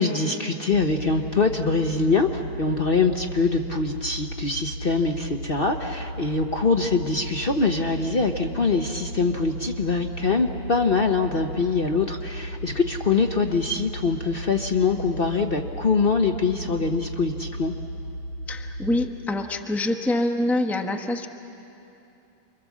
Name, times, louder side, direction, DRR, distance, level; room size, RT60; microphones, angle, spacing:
voice 1, 0.0-17.7, left 4 dB, 50° left, 4 dB, 0.6 m, -23 dB
sound 1, 0.7-19.1, equal, 85° left, 3.7 m, -35 dB
voice 2, 18.5-21.3, left 1 dB, ahead, 4 dB, 0.6 m, -25 dB
29.5 x 24.0 x 7.4 m, 2.9 s
omnidirectional pair, 2.2 m